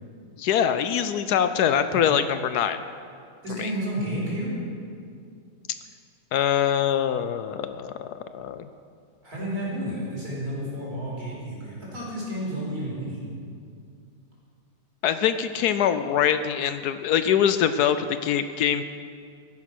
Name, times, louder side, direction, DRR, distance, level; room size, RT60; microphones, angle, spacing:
voice 1, 0.4-2.8 3.6-3.7 6.3-8.1 8.3-8.7 15.0-18.8, left 9 dB, 75° left, 11 dB, 1.1 m, -23 dB
voice 2, 3.4-4.5 9.2-13.2, equal, 60° right, -6 dB, 4.8 m, -31 dB
13.5 x 11.0 x 6.0 m, 2.3 s
omnidirectional pair, 1.8 m